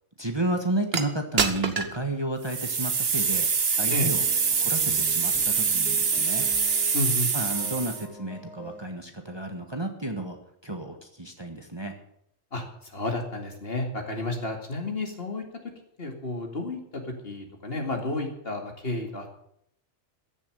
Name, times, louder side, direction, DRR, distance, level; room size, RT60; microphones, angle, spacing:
voice 1, 0.2-3.5 3.8-4.3 4.6-6.5 7.3-12.0, right 1 dB, 20° right, 4 dB, 1.5 m, -32 dB
sound 1, 0.9-1.0 1.4-2.0 2.4-8.0, right 5 dB, 55° right, 1.4 m, -25 dB
sound 2, 3.7-7.1 7.3-8.8, right 1 dB, ahead, 3.1 m, -45 dB
voice 2, 6.9-7.3 12.5-15.4 16.0-19.3, left 2 dB, 50° left, 3 dB, 2.6 m, -31 dB
15.0 x 7.2 x 9.0 m, 0.72 s
omnidirectional pair, 1.3 m